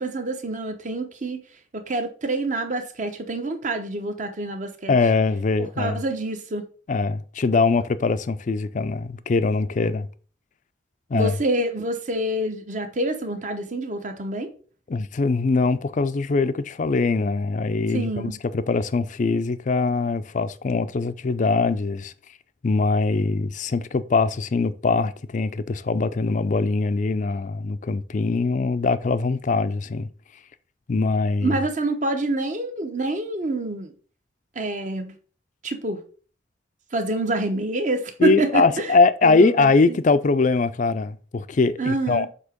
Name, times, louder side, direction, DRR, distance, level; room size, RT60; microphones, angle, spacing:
voice 1, 0.0-1.4 1.7-5.0 5.8-6.7 11.1-14.5 17.9-18.3 31.4-33.9 34.5-35.1 35.6-36.0 36.9-38.9 39.2-40.0 41.8-42.3, right 2 dB, 45° right, 1.0 m, -27 dB
voice 2, 4.9-6.0 6.9-10.1 11.1-11.3 14.9-22.1 22.6-30.1 30.9-31.6 38.2-42.3, left 3 dB, 45° left, 0.4 m, -22 dB
8.0 x 3.0 x 5.1 m
head